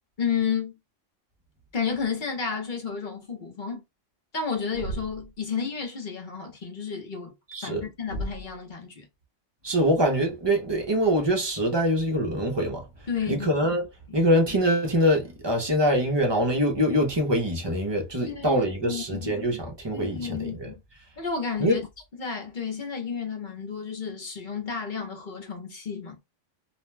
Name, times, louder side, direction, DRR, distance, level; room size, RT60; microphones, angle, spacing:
voice 1, 0.2-0.8 1.7-3.8 4.3-7.3 7.6-9.1 13.1-13.5 14.1-14.2 18.2-19.3 19.9-20.7 21.2-21.8 22.1-26.2, left 6 dB, 45° left, 0.9 m, -31 dB
Thump thud, 4.7-5.4 8.1-8.6, right 1 dB, 65° right, 0.8 m, -35 dB
voice 2, 7.5-7.8 9.6-12.8 13.3-13.8 14.1-20.7 21.6-21.8, equal, 30° right, 0.6 m, -24 dB
2.5 x 2.1 x 3.2 m
omnidirectional pair, 1.3 m